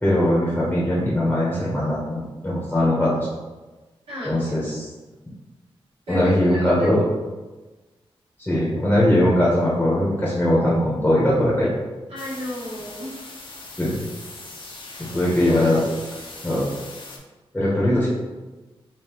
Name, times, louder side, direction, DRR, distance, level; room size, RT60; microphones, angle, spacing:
voice 1, 0.0-3.3 4.2-4.9 6.1-7.0 8.4-11.8 13.8-13.9 15.1-15.8 16.4-16.6 17.5-18.1, left 1 dB, 15° left, -6 dB, 0.8 m, -20 dB
voice 2, 4.1-4.5 6.1-6.9 12.1-13.2 15.2-15.9, left 1 dB, 80° right, -10 dB, 1.4 m, -34 dB
sound 1, 12.2-17.2, left 3 dB, 55° left, 0.6 m, -40 dB
3.6 x 2.8 x 2.9 m, 1.2 s
wide cardioid pair, 115°, 10 cm